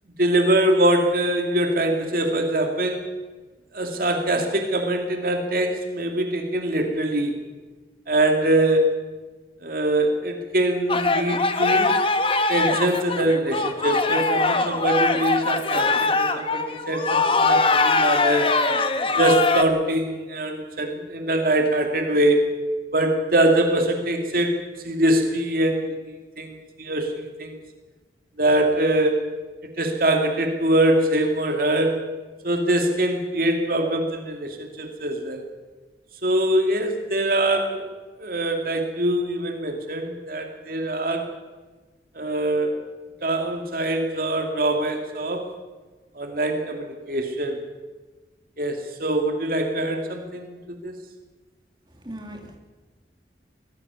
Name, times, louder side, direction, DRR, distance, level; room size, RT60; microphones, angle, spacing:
voice 1, 0.2-3.1 3.7-7.4 8.1-9.1 9.6-11.9 12.5-18.5 19.2-22.5 22.9-24.6 24.8-25.9 26.4-27.6 28.4-29.2 29.8-32.0 32.4-35.4 36.2-37.9 38.2-41.3 42.1-42.8 43.2-45.4 46.2-47.6 48.6-50.9, right 1 dB, 55° right, 3 dB, 2.5 m, -23 dB
sound 1, 10.9-19.6, left 3 dB, 30° left, 1.3 m, -22 dB
voice 2, 51.9-52.6, right 1 dB, 25° right, 2 dB, 2.9 m, -39 dB
23.5 x 18.0 x 7.1 m, 1.3 s
head